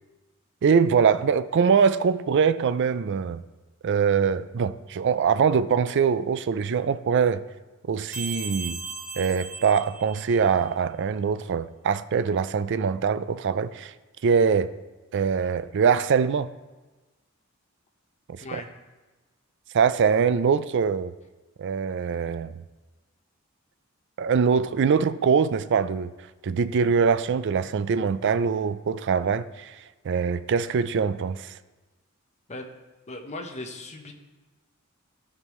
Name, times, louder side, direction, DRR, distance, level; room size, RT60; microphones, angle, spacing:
voice 1, 0.6-3.4 3.8-7.4 7.9-8.8 9.2-13.9 14.2-14.7 15.1-16.5 18.3-18.6 19.7-21.1 21.6-22.5 24.2-26.1 26.4-29.7 30.0-31.5, right 6 dB, 60° right, 0.4 m, -23 dB
sound 1, 8.1-10.7, right 4 dB, 5° right, 0.9 m, -37 dB
voice 2, 33.1-34.1, left 2 dB, 35° left, 1.0 m, -37 dB
15.5 x 5.4 x 3.1 m
head